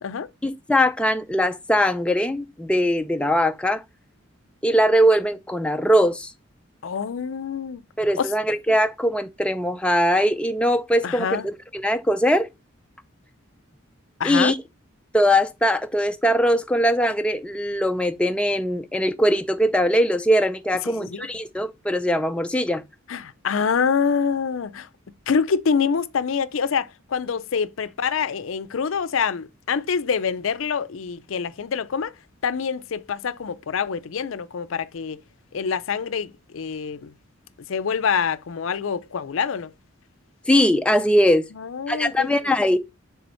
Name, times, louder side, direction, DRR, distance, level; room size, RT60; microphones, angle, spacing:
voice 1, 0.4-3.8 4.6-6.3 8.0-11.3 11.7-12.5 14.2-14.6 15.1-22.8 40.5-41.5 41.9-42.8, equal, 5° left, 0.4 m, -21 dB
voice 2, 6.8-7.8 8.2-8.3 11.0-11.5 14.2-14.5 20.9-21.3 23.1-24.9 25.3-32.1 32.4-35.2 35.5-37.1 37.7-39.7 41.6-42.5, left 6 dB, 75° left, 0.5 m, -26 dB
6.9 x 3.9 x 4.3 m
head